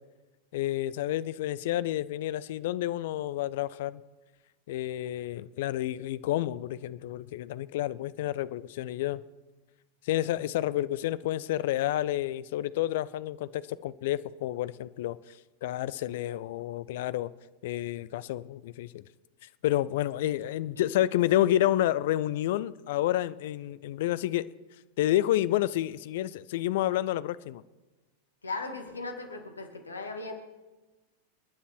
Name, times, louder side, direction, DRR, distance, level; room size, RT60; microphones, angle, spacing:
voice 1, 0.5-4.0 4.7-9.2 10.1-15.2 15.6-17.3 17.6-19.0 19.6-24.5 25.0-27.6, left 13 dB, 55° left, 17 dB, 0.5 m, -29 dB
voice 2, 28.4-30.3, left 3 dB, 75° left, 5 dB, 2.1 m, -37 dB
28.5 x 9.9 x 4.6 m, 1.2 s
figure-of-eight pair, 90°, 0 cm